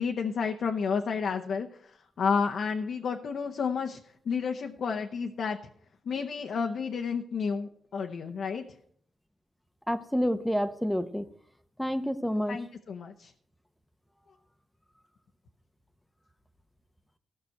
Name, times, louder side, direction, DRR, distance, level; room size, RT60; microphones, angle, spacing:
voice 1, 0.0-1.9 2.2-4.0 4.2-5.6 6.0-8.6 12.5-13.3, left 5 dB, 65° left, 3 dB, 0.9 m, -31 dB
voice 2, 9.9-11.3 11.8-12.6, equal, 5° left, 10 dB, 0.9 m, -28 dB
15.0 x 5.9 x 7.8 m, 0.63 s
cardioid pair, 80°, 0 cm